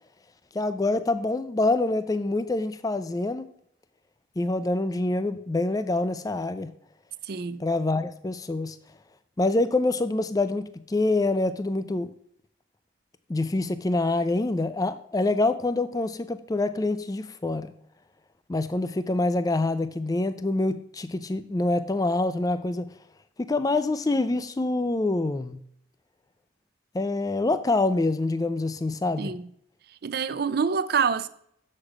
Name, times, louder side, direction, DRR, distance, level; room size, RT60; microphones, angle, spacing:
voice 1, 0.5-3.5 4.4-6.7 7.6-8.8 9.4-12.1 13.3-17.7 18.5-22.9 23.4-25.6 26.9-29.3, left 2 dB, 20° left, 0.3 m, -26 dB
voice 2, 7.2-7.6 29.2-29.5 30.0-31.3, right 6 dB, 50° right, 0.4 m, -26 dB
7.4 x 6.5 x 4.8 m
head